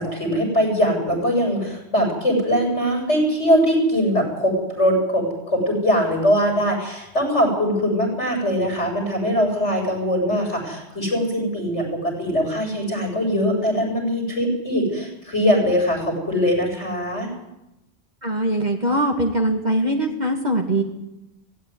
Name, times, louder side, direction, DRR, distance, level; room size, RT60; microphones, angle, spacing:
voice 1, 0.0-17.3, equal, 90° left, 1 dB, 7.9 m, -21 dB
voice 2, 18.2-20.8, right 1 dB, 40° right, 2 dB, 2.2 m, -22 dB
18.0 x 16.0 x 9.8 m, 0.90 s
omnidirectional pair, 1.2 m